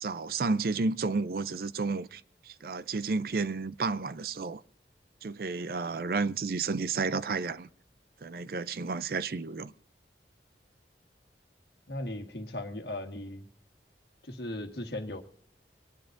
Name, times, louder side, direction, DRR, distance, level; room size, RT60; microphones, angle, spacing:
voice 1, 0.0-4.6 5.2-7.7 8.2-9.7, right 4 dB, 55° right, 0.5 m, -31 dB
voice 2, 11.9-13.5 14.2-15.2, left 1 dB, 65° left, 1.5 m, -37 dB
23.0 x 10.5 x 2.6 m
head